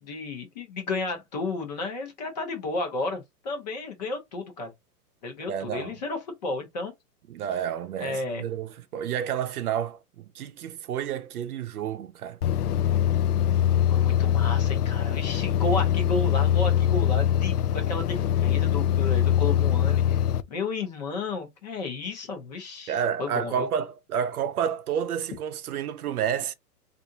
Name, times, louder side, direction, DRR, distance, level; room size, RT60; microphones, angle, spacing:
voice 1, 0.0-4.7 5.2-6.9 8.0-8.4 13.9-20.2 20.5-23.7, left 3 dB, 30° left, 0.8 m, -32 dB
voice 2, 5.5-6.0 7.3-12.4 22.9-26.5, right 8 dB, 70° right, 0.7 m, -30 dB
sound 1, 12.4-20.4, left 10 dB, 75° left, 0.6 m, -23 dB
3.3 x 2.6 x 2.6 m
hypercardioid pair, 165°, 46 cm